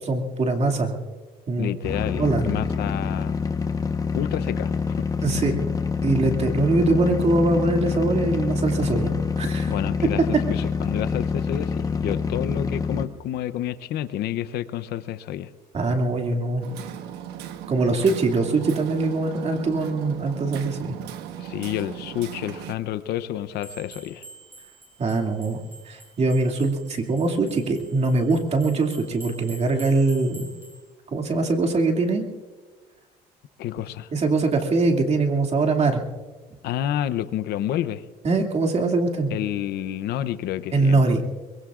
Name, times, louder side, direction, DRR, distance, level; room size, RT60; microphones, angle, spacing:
voice 1, 0.0-1.0 1.5-1.7 2.1-2.5 5.2-5.5 6.0-9.7 15.7-16.7 17.7-21.0 25.0-25.6 25.9-30.5 31.1-32.2 34.1-36.0 38.2-39.3 40.7-41.2, right 3 dB, 40° right, 3 dB, 2.4 m, -22 dB
voice 2, 1.6-3.4 4.1-5.0 9.7-15.5 21.4-24.2 33.6-34.1 36.6-38.0 39.3-41.0, left 11 dB, 75° left, 13 dB, 0.7 m, -29 dB
sound 1, 1.8-13.1, left 5 dB, 20° left, 1.1 m, -26 dB
Hammer, 16.6-22.7, right 10 dB, 85° right, 1.1 m, -37 dB
sound 2, 23.6-30.8, right 2 dB, 15° right, 3.3 m, -47 dB
23.0 x 23.0 x 2.5 m, 1.3 s
cardioid pair, 110°, 17 cm